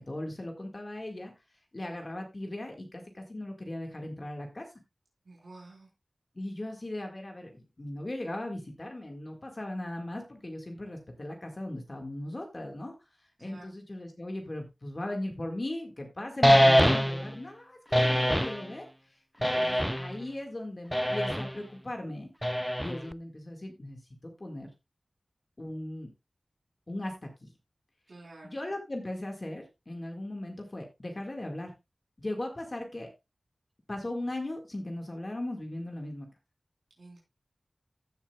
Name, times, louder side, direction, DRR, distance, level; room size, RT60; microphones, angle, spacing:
voice 1, 0.1-1.3 1.7-4.7 6.4-12.9 13.2-22.3 22.8-24.7 25.6-26.1 26.9-27.5 28.4-31.7 32.2-33.1 33.9-36.3, left 1 dB, 40° left, 2 dB, 1.8 m, -38 dB
voice 2, 5.2-5.9 13.4-13.7 28.1-28.6 37.0-37.2, right 2 dB, 90° right, -3 dB, 3.7 m, -50 dB
sound 1, 16.4-17.3 17.9-18.6 19.4-20.2 20.9-21.5 22.4-23.1, equal, 5° left, 0.4 m, -23 dB
15.0 x 7.3 x 2.3 m, 0.24 s
wide cardioid pair, 75°, 0 cm